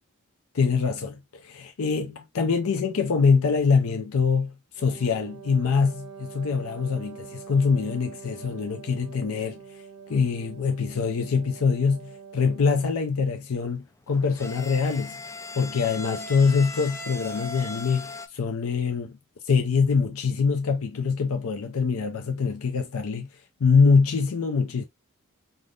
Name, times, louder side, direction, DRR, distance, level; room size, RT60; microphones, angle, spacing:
voice 1, 0.5-9.6 10.1-15.2 15.5-19.2 19.5-23.3 23.6-24.8, left 5 dB, 70° left, 0.5 m, -24 dB
Wind instrument woodwind instrument, 4.8-12.9, right 6 dB, 85° right, 0.7 m, -45 dB
sound 1, 14.0-18.3, left 3 dB, 15° left, 0.4 m, -38 dB
3.5 x 2.5 x 2.4 m
head